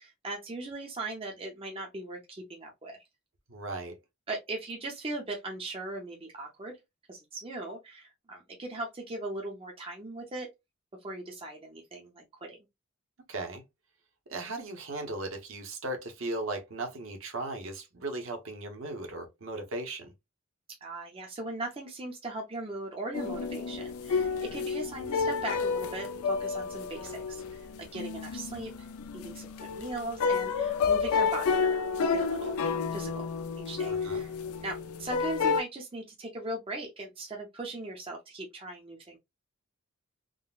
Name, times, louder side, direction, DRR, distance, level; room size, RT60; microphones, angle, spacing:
voice 1, 0.0-3.0 4.3-6.8 7.1-10.5 11.0-12.6 20.8-28.9 29.1-33.3 33.6-34.3 34.6-39.2, right 2 dB, 25° right, 0.5 m, -39 dB
voice 2, 3.5-4.0 13.3-13.6 14.3-20.1 33.9-34.2, right 2 dB, 65° right, 0.8 m, -37 dB
sound 1, 23.1-35.6, left 5 dB, 80° left, 0.4 m, -30 dB
3.7 x 2.0 x 2.3 m
head